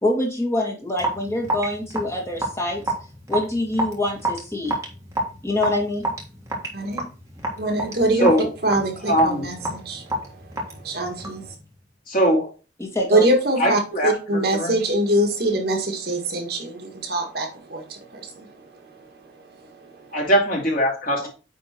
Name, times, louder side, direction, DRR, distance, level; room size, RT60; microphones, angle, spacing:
voice 1, 0.0-2.9 3.3-4.8 5.4-6.1 12.8-13.2, left 1 dB, 15° left, 1.9 m, -25 dB
Raindrop / Drip, 1.0-11.5, right 1 dB, 15° right, 1.7 m, -29 dB
voice 2, 6.7-7.0 7.6-8.3 8.6-10.0 10.8-11.5 13.1-18.5, right 1 dB, 55° right, 1.7 m, -23 dB
voice 3, 8.2-8.5 9.0-9.5 12.1-12.5 13.6-14.7 20.1-21.3, equal, 45° left, 2.5 m, -21 dB
9.2 x 3.5 x 4.4 m
head